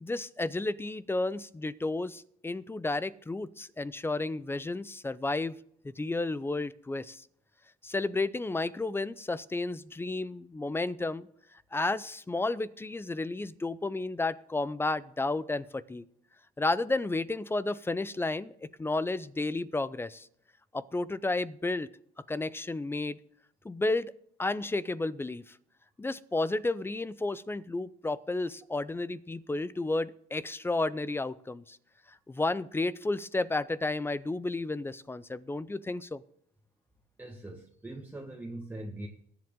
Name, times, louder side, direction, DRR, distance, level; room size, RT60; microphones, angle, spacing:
voice 1, 0.0-5.6 5.8-7.2 7.8-11.3 11.7-16.0 16.6-20.3 20.7-21.9 22.3-23.2 23.6-24.1 24.4-25.4 26.0-31.8 32.3-36.2, left 2 dB, 15° left, 17 dB, 0.5 m, -32 dB
voice 2, 37.2-39.1, right 1 dB, 10° right, 1 dB, 1.5 m, -42 dB
20.5 x 7.7 x 3.8 m, 0.67 s
cardioid pair, 110°, 17 cm